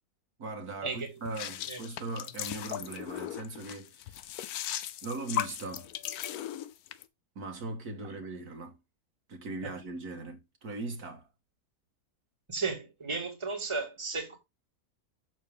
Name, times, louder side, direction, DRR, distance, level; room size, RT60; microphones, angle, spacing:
voice 1, 0.4-4.2 5.0-5.9 7.4-8.8 9.3-11.3, right 3 dB, 75° right, 2.2 m, -39 dB
sound 1, 1.3-7.0, left 11 dB, 80° left, 1.1 m, -37 dB
voice 2, 12.5-14.4, right 4 dB, 20° right, 1.8 m, -34 dB
6.7 x 6.1 x 3.5 m
omnidirectional pair, 1.6 m